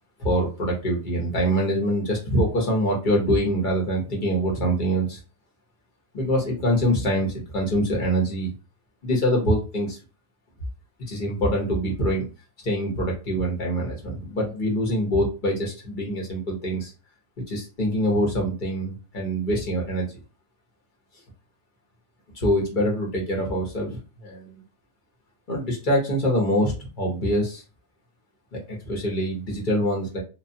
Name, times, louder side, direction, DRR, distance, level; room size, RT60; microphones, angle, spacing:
voice 1, 0.2-5.2 6.1-8.5 9.0-10.0 11.1-12.3 12.6-16.9 17.5-20.2 22.3-24.6 25.5-27.6 28.5-30.2, equal, 40° left, -3 dB, 0.8 m, -24 dB
3.1 x 2.1 x 2.7 m, 0.33 s
omnidirectional pair, 1.7 m